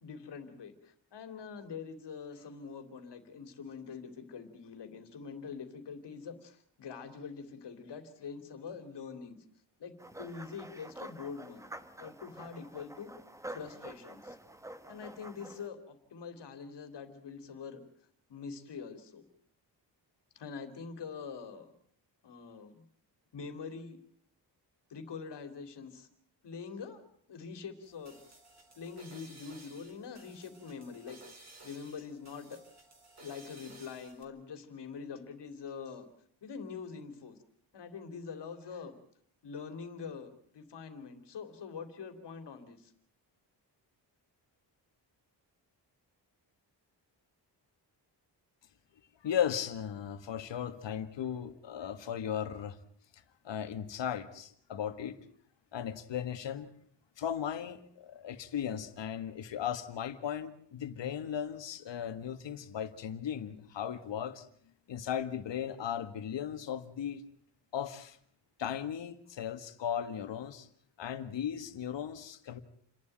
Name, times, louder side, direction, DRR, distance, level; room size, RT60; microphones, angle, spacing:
voice 1, 0.0-9.4 9.8-9.9 10.2-11.7 12.0-13.1 13.5-14.4 14.9-17.8 18.3-19.2 20.3-21.7 22.2-22.8 23.3-24.0 24.9-26.1 26.4-28.2 28.8-32.6 33.2-36.1 36.4-37.4 37.7-39.0 39.4-42.9, left 5 dB, 70° left, 8 dB, 3.0 m, -44 dB
sound 1, 10.0-15.7, right 1 dB, 5° right, 1.0 m, -48 dB
sound 2, 27.8-34.2, right 2 dB, 40° right, 4.2 m, -56 dB
voice 2, 49.2-52.8 53.4-55.2 55.7-56.7 57.2-64.5 64.9-67.2 67.7-68.2 68.6-70.7 71.0-72.6, left 9 dB, 90° left, 10 dB, 1.8 m, -36 dB
29.0 x 11.5 x 9.0 m, 0.63 s
wide cardioid pair, 160°, 42 cm